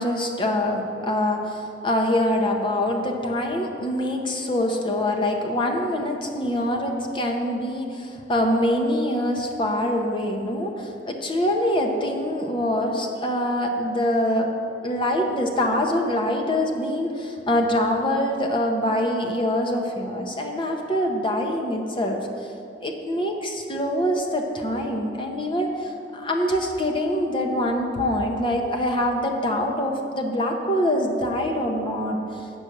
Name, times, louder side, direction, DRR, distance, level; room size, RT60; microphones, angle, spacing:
voice 1, 0.0-14.5 14.8-22.5 22.8-32.5, left 1 dB, 30° left, 2 dB, 0.9 m, -24 dB
8.4 x 6.2 x 6.5 m, 2.6 s
head